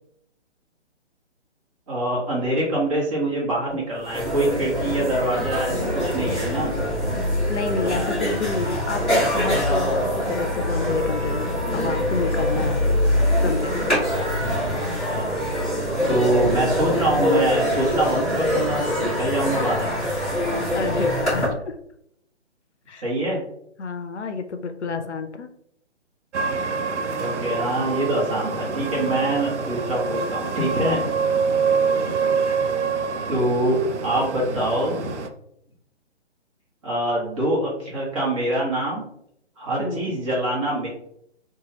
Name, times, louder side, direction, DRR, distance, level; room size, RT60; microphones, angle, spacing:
voice 1, 1.9-6.8 15.0-15.4 16.1-19.9 23.0-23.4 27.2-31.0 33.3-35.1 36.8-39.0 39.6-40.9, right 1 dB, 30° right, -4 dB, 1.2 m, -24 dB
sound 1, 3.7-3.8 4.0-21.5, left 1 dB, ahead, 0.7 m, -24 dB
voice 2, 7.5-12.8 13.4-13.9 20.7-21.7 22.9-23.0 23.8-25.5 31.8-32.2 39.8-40.1, left 4 dB, 75° left, 7 dB, 0.5 m, -29 dB
sound 2, 26.3-35.3, right 5 dB, 75° right, 0.5 m, -25 dB
2.7 x 2.4 x 2.9 m, 0.72 s
figure-of-eight pair, 140°, 35 cm